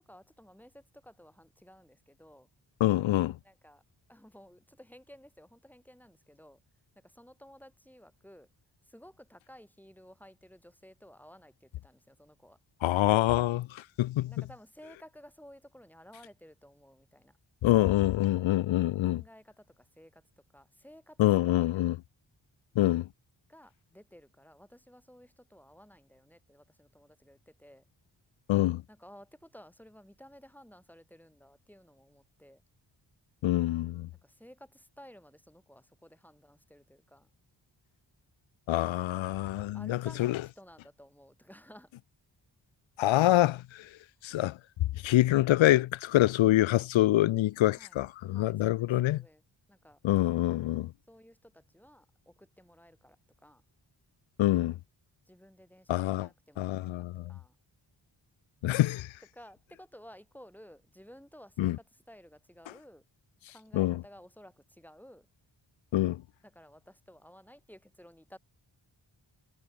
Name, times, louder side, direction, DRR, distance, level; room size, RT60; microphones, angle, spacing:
voice 1, 0.0-2.5 3.4-3.8 4.1-6.6 7.0-8.5 8.8-12.6 14.2-17.4 18.5-20.2 20.5-21.9 23.5-27.8 28.9-32.6 34.1-37.3 39.4-41.9 47.7-49.4 49.7-50.0 51.1-53.6 55.3-57.6 59.3-63.0 63.5-65.3 66.4-68.4, equal, 5° left, 7.9 m, -55 dB
voice 2, 2.8-3.4 12.8-14.3 17.6-19.2 21.2-21.9 22.8-23.1 28.5-28.8 33.4-34.1 38.7-40.4 43.0-43.8 44.2-44.6 45.0-49.2 50.0-50.9 54.4-54.8 55.9-56.3 56.6-57.3 58.6-59.1 61.6-61.8 63.7-64.0 65.9-66.2, left 15 dB, 80° left, 0.5 m, -26 dB
cardioid pair, 60°, 45 cm